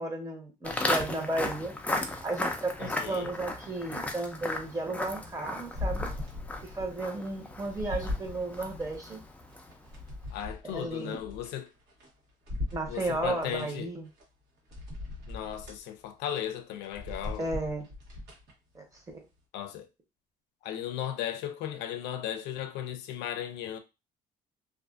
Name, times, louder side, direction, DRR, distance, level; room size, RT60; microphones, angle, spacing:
voice 1, 0.0-1.7 2.2-6.1 6.6-9.2 10.6-11.2 12.7-14.0 17.4-17.9 18.7-19.2, right 2 dB, 20° right, 0.9 m, -34 dB
Walk footsteps, 0.6-9.9, left 2 dB, 10° left, 0.4 m, -36 dB
voice 2, 2.8-3.3 10.3-11.7 12.9-13.9 15.3-17.5 19.5-19.9 20.6-23.8, left 10 dB, 90° left, 0.4 m, -36 dB
sound 1, 5.7-6.9 7.3-9.0 9.5-12.1 12.4-13.6 14.2-14.3 14.7-15.8 16.3-16.5 16.8-18.5 19.0-19.1, left 2 dB, 85° right, 1.1 m, -38 dB
2.4 x 2.4 x 2.4 m
cardioid pair, 110°, 17 cm